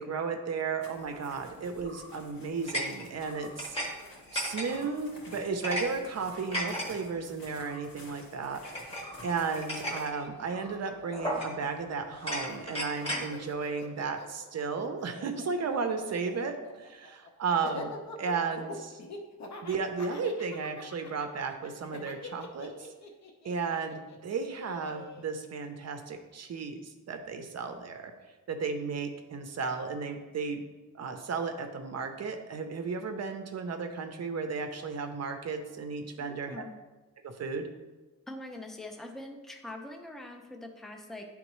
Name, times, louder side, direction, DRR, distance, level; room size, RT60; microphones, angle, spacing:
voice 1, 0.0-3.8 4.3-8.6 9.2-19.0 19.6-22.9 23.4-28.1 28.5-30.7 30.9-36.6 37.2-37.7, right 5 dB, 50° right, 6 dB, 0.5 m, -34 dB
sound 1, 0.8-10.1, left 2 dB, 80° left, 1.7 m, -53 dB
sound 2, 1.8-2.1 2.7-3.9 4.1-4.9 5.3-5.9 6.2-6.9 7.6-7.8 8.6-10.1 10.5-10.7 11.1-11.7 12.2-13.3, equal, 15° left, 0.9 m, -35 dB
Laughter, 9.6-11.9 12.2-25.2, left 2 dB, 50° left, 0.7 m, -45 dB
voice 2, 36.2-36.7 38.3-41.3, left 1 dB, ahead, 3 dB, 0.4 m, -43 dB
10.0 x 3.5 x 3.0 m, 1.2 s
wide cardioid pair, 170°, 34 cm